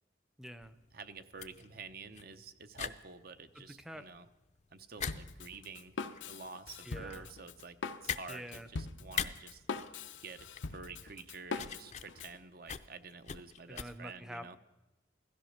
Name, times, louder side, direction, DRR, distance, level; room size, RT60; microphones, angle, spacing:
voice 1, 0.4-0.8 3.6-4.0 6.8-7.3 8.3-8.7 13.7-14.6, equal, 5° right, 11 dB, 0.6 m, -46 dB
sound 1, 0.6-13.8, left 8 dB, 40° left, 0.6 m, -44 dB
voice 2, 0.9-4.3 4.7-6.0 6.3-9.6 10.2-14.6, right 4 dB, 55° right, 10 dB, 0.8 m, -49 dB
Drum kit, 5.1-12.4, left 4 dB, 90° left, 0.8 m, -42 dB
16.5 x 13.5 x 6.5 m, 1.1 s
head